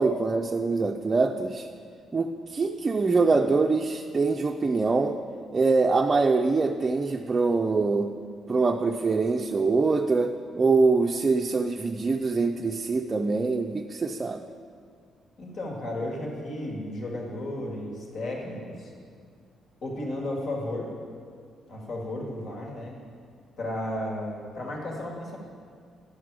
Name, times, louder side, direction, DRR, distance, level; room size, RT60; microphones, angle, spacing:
voice 1, 0.0-1.7 2.1-5.2 5.5-8.1 8.5-14.5, right 3 dB, 30° right, 3 dB, 0.4 m, -24 dB
voice 2, 15.4-18.9 19.8-20.9 21.7-22.9 23.6-25.4, left 1 dB, 60° left, -1 dB, 1.8 m, -33 dB
10.5 x 5.9 x 4.7 m, 2.1 s
cardioid pair, 90°, 0 cm